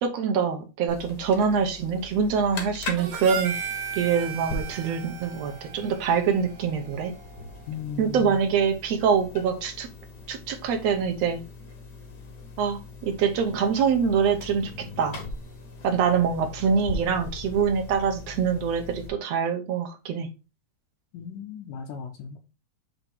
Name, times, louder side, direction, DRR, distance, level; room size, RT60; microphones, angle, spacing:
voice 1, 0.0-3.5 4.0-7.1 8.0-9.9 10.3-11.4 12.6-14.7 15.0-15.2 15.8-20.3, right 6 dB, 65° right, 1.8 m, -24 dB
sound 1, 0.9-19.1, left 3 dB, 55° left, 1.2 m, -40 dB
Harmonica, 3.0-7.5, right 7 dB, 85° right, 2.7 m, -36 dB
voice 2, 7.7-8.4 21.1-22.4, left 5 dB, 80° left, 2.2 m, -36 dB
7.8 x 2.9 x 4.4 m
omnidirectional pair, 3.6 m